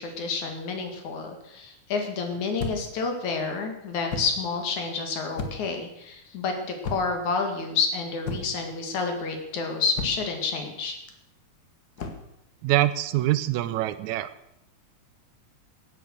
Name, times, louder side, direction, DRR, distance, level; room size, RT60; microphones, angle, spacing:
voice 1, 0.0-11.0, left 4 dB, 70° left, 4 dB, 3.4 m, -29 dB
sound 1, 2.6-3.0 4.1-4.4 5.4-5.8 6.8-7.3 8.2-8.7 10.0-10.3 12.0-12.3, left 3 dB, 45° left, 1.3 m, -34 dB
voice 2, 12.6-14.3, right 14 dB, 80° right, 13 dB, 1.9 m, -24 dB
16.5 x 9.1 x 6.5 m, 0.83 s
omnidirectional pair, 3.5 m